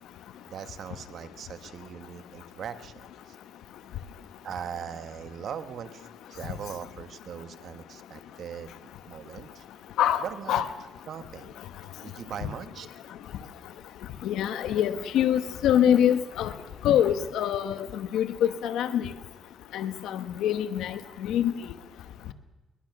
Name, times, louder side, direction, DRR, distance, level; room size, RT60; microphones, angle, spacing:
voice 1, 0.4-3.4 4.4-8.7 9.1-9.6 10.2-10.6 11.1-11.5 12.0-13.0, right 8 dB, 65° right, 10 dB, 1.3 m, -40 dB
voice 2, 10.0-10.6 14.2-16.5 16.8-19.1 19.7-21.5, left 10 dB, 85° left, 10 dB, 1.1 m, -25 dB
22.0 x 20.5 x 6.0 m, 1.1 s
cardioid pair, 90°, 0 cm